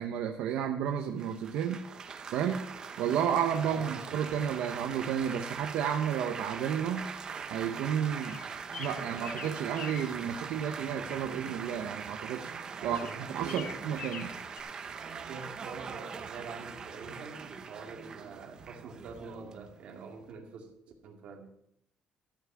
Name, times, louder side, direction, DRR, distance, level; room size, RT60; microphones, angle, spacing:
voice 1, 0.0-1.8 2.3-2.7 3.0-7.1 7.5-8.4 8.8-12.5 12.8-14.3, right 8 dB, 85° right, 4 dB, 0.8 m, -32 dB
Laughter / Applause / Chatter, 1.2-20.3, right 6 dB, 30° right, 0.8 m, -42 dB
voice 2, 3.6-4.2 12.8-13.8 15.3-20.7 21.0-21.5, right 5 dB, 60° right, 1 dB, 2.2 m, -45 dB
sound 1, 8.2-10.1 12.9-14.6, left 7 dB, 45° left, 0.7 m, -44 dB
13.5 x 5.8 x 6.0 m, 0.75 s
cardioid pair, 170°, 2 cm